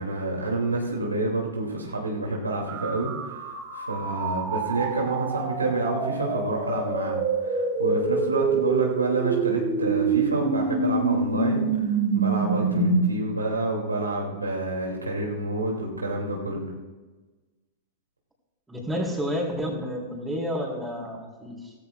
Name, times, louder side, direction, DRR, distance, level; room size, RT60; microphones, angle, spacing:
voice 1, 0.0-16.6, right 2 dB, 85° right, -1 dB, 2.7 m, -28 dB
sound 1, 2.7-13.0, right 4 dB, 35° right, 2.1 m, -26 dB
voice 2, 8.4-8.7 18.7-21.7, equal, 10° right, -2 dB, 4.1 m, -30 dB
18.0 x 15.0 x 2.4 m, 1.2 s
figure-of-eight pair, 95°, 0 cm